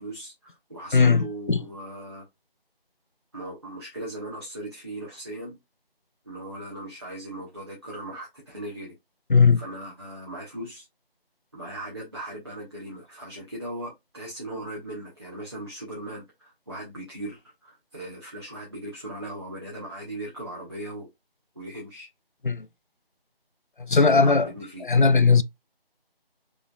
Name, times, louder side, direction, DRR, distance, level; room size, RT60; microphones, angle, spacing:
voice 1, 0.0-2.2 3.3-5.6 6.2-8.9 9.6-10.9 11.5-21.1 21.5-22.1 24.0-24.9, right 1 dB, 25° right, 0.9 m, -38 dB
voice 2, 0.9-1.6 9.3-9.6 22.4-22.7 23.8-24.5 24.8-25.4, left 4 dB, 55° left, 0.5 m, -18 dB
5.4 x 3.2 x 2.2 m
figure-of-eight pair, 165°, 30 cm